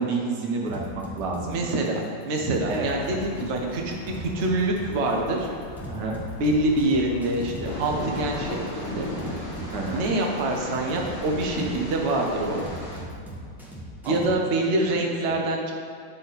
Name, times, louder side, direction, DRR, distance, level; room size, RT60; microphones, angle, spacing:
voice 1, 0.0-1.6 2.6-2.9 3.3-3.4 5.9-6.2 9.7-10.0 14.0-14.2 15.3-15.4, right 4 dB, 60° right, 0 dB, 1.3 m, -29 dB
sound 1, 0.7-14.3, right 1 dB, ahead, 0.6 m, -39 dB
voice 2, 1.5-3.9 4.2-5.5 6.4-9.1 9.9-12.6 14.0-15.7, right 2 dB, 85° right, 0 dB, 0.6 m, -25 dB
sound 2, 2.7-7.8, left 3 dB, 80° left, 1.6 m, -42 dB
sound 3, 7.6-13.0, left 1 dB, 40° left, 1.2 m, -34 dB
9.2 x 4.2 x 4.0 m, 2.4 s
omnidirectional pair, 2.4 m